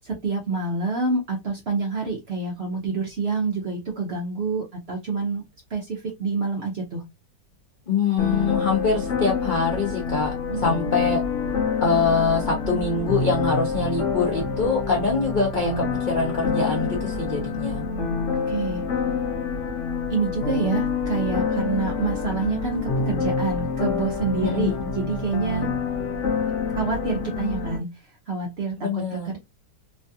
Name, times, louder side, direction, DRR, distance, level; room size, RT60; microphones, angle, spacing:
voice 1, 0.0-5.4 5.7-7.0 10.5-10.9 18.5-18.8 20.1-25.7 26.7-27.9 28.3-29.4, right 4 dB, 60° right, 0.7 m, -27 dB
voice 2, 7.9-11.2 11.8-17.9 24.4-24.9 28.8-29.3, left 4 dB, 85° left, 0.4 m, -24 dB
sound 1, 8.2-27.8, left 5 dB, 55° left, 1.0 m, -27 dB
3.1 x 2.3 x 2.7 m
omnidirectional pair, 1.8 m